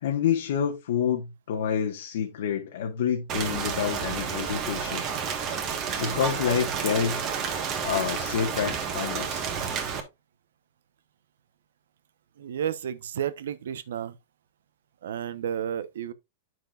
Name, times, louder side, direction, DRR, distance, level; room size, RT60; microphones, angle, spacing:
voice 1, 0.0-5.0 6.0-7.6 7.8-9.5, left 8 dB, 60° left, 1.4 m, -28 dB
Rain, 3.3-10.0, right 6 dB, 25° right, 1.4 m, -30 dB
voice 2, 12.4-14.1 15.0-16.1, right 9 dB, 80° right, 0.9 m, -32 dB
9.5 x 6.2 x 2.4 m
supercardioid pair, 170°, 0 cm